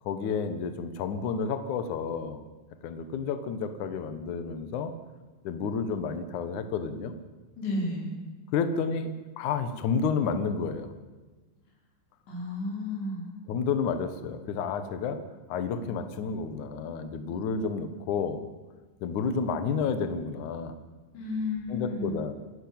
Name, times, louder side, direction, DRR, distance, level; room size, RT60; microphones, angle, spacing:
voice 1, 0.1-2.4 2.8-4.9 5.4-7.1 8.5-10.9 13.5-15.2 15.5-18.4 19.0-20.8 21.7-22.3, left 5 dB, 80° left, 9 dB, 1.7 m, -30 dB
voice 2, 7.6-8.1 12.2-13.2 21.1-22.1, left 2 dB, 60° left, -1 dB, 7.2 m, -32 dB
27.0 x 11.5 x 8.8 m, 1.3 s
omnidirectional pair, 5.6 m